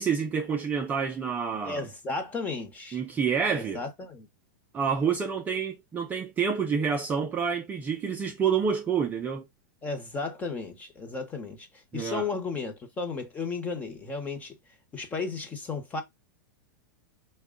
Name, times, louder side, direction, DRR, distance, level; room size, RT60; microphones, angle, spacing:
voice 1, 0.0-1.9 2.9-3.8 4.7-9.4 11.9-12.3, right 6 dB, 15° right, 0.4 m, -28 dB
voice 2, 1.6-3.0 3.5-4.3 9.8-14.5 14.9-16.0, left 4 dB, 15° left, 0.9 m, -34 dB
4.7 x 2.2 x 3.6 m
supercardioid pair, 150°, 10 cm